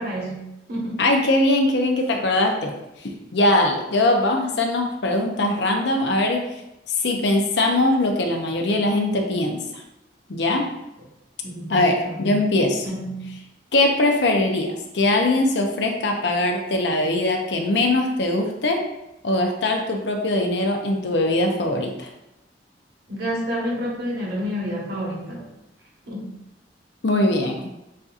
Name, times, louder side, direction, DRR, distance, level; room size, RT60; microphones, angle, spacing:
voice 1, 0.0-1.0 11.4-11.8 12.1-12.4 12.8-13.3 23.1-25.4 26.1-26.3, equal, 60° right, -3 dB, 1.4 m, -29 dB
voice 2, 1.0-2.7 3.3-6.4 7.0-9.6 10.3-10.6 11.7-12.9 13.7-18.8 19.2-22.1 27.0-27.7, left 2 dB, 70° left, 3 dB, 0.7 m, -21 dB
7.5 x 2.7 x 2.5 m, 0.92 s
head